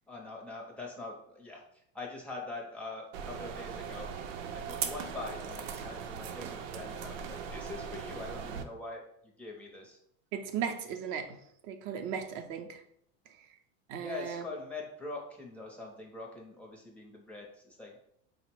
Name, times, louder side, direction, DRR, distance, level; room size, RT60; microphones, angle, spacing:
voice 1, 0.1-1.6 1.9-4.1 4.5-10.0 14.0-18.0, left 3 dB, 5° left, -1 dB, 0.5 m, -43 dB
sound 1, 3.1-8.6, right 7 dB, 90° right, 0.6 m, -39 dB
voice 2, 10.3-12.8 13.4-13.5 13.9-14.4, right 7 dB, 50° right, 6 dB, 0.5 m, -37 dB
4.0 x 2.0 x 4.3 m, 0.71 s
supercardioid pair, 150°, 38 cm